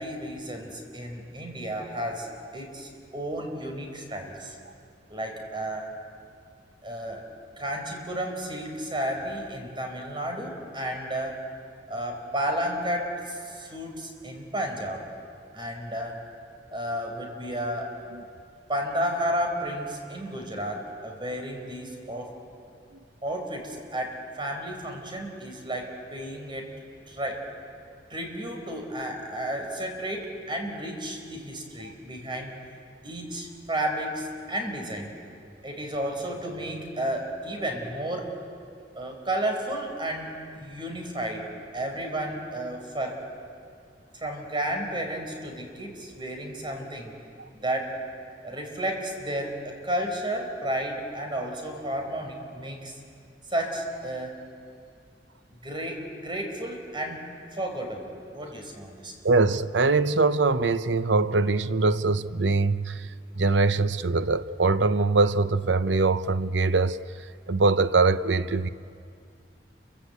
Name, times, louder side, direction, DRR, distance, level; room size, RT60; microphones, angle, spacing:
voice 1, 0.0-4.6 5.1-5.9 6.8-7.3 7.6-11.4 11.9-15.1 15.5-16.2 16.7-18.0 18.7-22.3 23.2-26.7 27.1-27.4 28.1-32.5 33.0-35.1 35.6-38.3 39.0-43.2 44.1-47.2 47.5-48.0 48.4-53.0 53.5-54.4 55.6-59.1, right 1 dB, 25° right, 4.7 m, -32 dB
voice 2, 59.2-62.9 63.4-67.0 67.5-68.7, right 3 dB, 85° right, 0.8 m, -22 dB
29.5 x 24.0 x 8.3 m
head